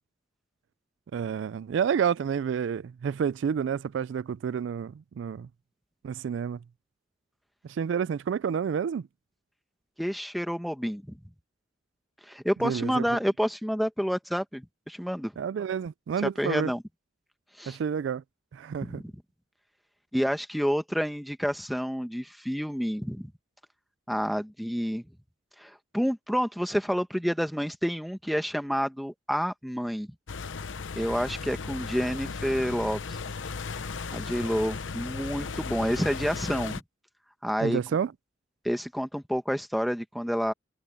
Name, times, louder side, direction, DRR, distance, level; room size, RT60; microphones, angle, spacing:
voice 1, 1.1-5.5 6.0-6.6 7.6-9.1 12.6-13.0 15.4-16.7 17.7-18.2 18.5-19.0 37.6-38.1, right 7 dB, 70° right, 0.3 m, -29 dB
voice 2, 10.0-11.2 12.3-15.3 16.4-16.8 17.6-17.8 18.8-19.1 20.1-23.3 24.1-25.0 25.6-30.1 30.9-33.0 34.1-36.8 37.4-37.8 38.6-40.5, equal, ahead, 1.3 m, -29 dB
sound 1, 30.3-36.8, left 4 dB, 80° left, 0.8 m, -36 dB
head